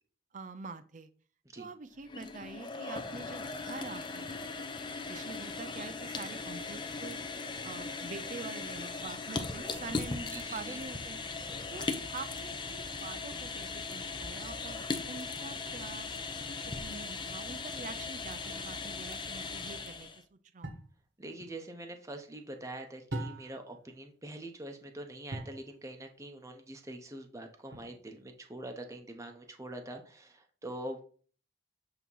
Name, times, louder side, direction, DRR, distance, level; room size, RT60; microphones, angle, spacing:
voice 1, 0.3-1.1 1.6-4.3 5.1-7.2 7.6-11.2 11.7-16.1 16.7-20.7, right 4 dB, 45° right, 11 dB, 0.5 m, -45 dB
sound 1, 2.0-20.2, left 4 dB, 25° left, 0.7 m, -39 dB
voice 2, 10.3-10.8 21.2-31.0, right 1 dB, 15° right, 4 dB, 0.8 m, -44 dB
sound 2, 20.6-21.0 23.1-23.7 25.3-25.7 27.7-28.2, right 1 dB, 80° right, 1.5 m, -40 dB
8.4 x 2.9 x 5.4 m, 0.42 s
head